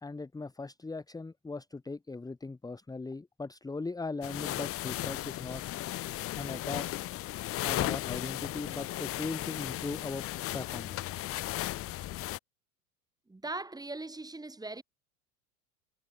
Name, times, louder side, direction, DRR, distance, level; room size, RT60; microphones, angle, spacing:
voice 1, 0.0-5.6 6.4-6.9 7.6-10.2 10.5-11.2, left 3 dB, 10° left, 1.5 m, -39 dB
sound 1, 4.2-12.4, left 15 dB, 30° left, 0.8 m, -36 dB
voice 2, 13.3-14.8, right 2 dB, 10° right, 2.7 m, -40 dB
figure-of-eight pair, 80°, 45 cm